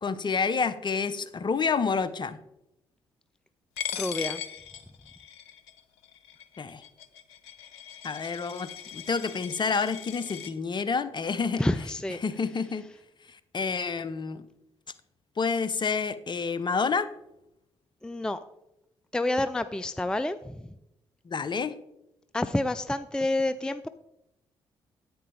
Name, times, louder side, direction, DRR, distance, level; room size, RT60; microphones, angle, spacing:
voice 1, 0.0-2.4 6.6-6.8 8.0-11.6 12.2-12.9 13.3-14.4 15.4-17.1 21.3-21.7, left 5 dB, 35° left, 14 dB, 0.7 m, -29 dB
Coin (dropping), 3.8-10.5, left 9 dB, 75° left, 0.6 m, -39 dB
voice 2, 3.9-4.4 11.6-12.2 18.0-18.4 19.1-20.7 22.3-23.9, left 1 dB, 5° left, 12 dB, 0.4 m, -28 dB
10.0 x 8.7 x 3.4 m, 0.87 s
figure-of-eight pair, 40°, 13 cm